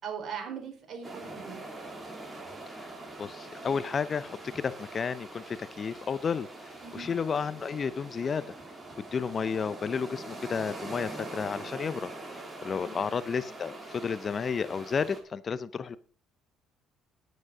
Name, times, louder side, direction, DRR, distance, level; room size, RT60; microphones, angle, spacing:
voice 1, 0.0-1.6 6.8-7.1 12.7-13.1, right 7 dB, 50° right, 3 dB, 4.6 m, -40 dB
sound 1, 1.0-15.2, right 2 dB, 20° right, 3.4 m, -43 dB
voice 2, 3.2-8.5 9.0-16.0, left 6 dB, 35° left, 16 dB, 0.6 m, -32 dB
9.9 x 9.3 x 5.0 m, 0.42 s
cardioid pair, 95°, 0 cm